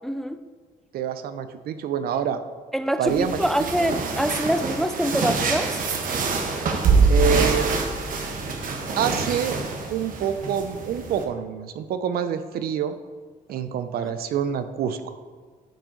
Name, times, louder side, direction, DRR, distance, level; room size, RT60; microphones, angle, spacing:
voice 1, 0.0-0.4 2.7-5.8, equal, ahead, 10 dB, 0.3 m, -25 dB
voice 2, 0.9-2.4 3.0-3.4 3.8-3.9 7.1-7.7 9.0-9.6 9.9-12.9 13.5-15.1, right 9 dB, 80° right, 10 dB, 0.5 m, -26 dB
sound 1, 3.1-11.2, right 4 dB, 65° right, 1.0 m, -25 dB
8.9 x 4.9 x 3.8 m, 1.5 s
cardioid pair, 105°, 15 cm